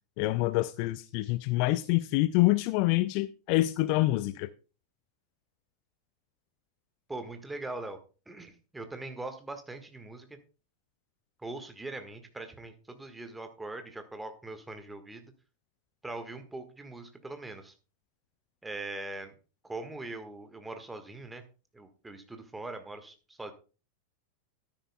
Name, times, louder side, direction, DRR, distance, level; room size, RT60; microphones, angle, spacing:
voice 1, 0.2-4.5, left 18 dB, 45° left, 0.4 m, -26 dB
voice 2, 7.1-8.0 8.3-10.3 11.4-15.3 16.0-17.7 18.6-19.3 19.6-21.4 21.7-23.5, right 2 dB, 10° right, 1.5 m, -41 dB
12.5 x 10.5 x 2.2 m
figure-of-eight pair, 90°, 0 cm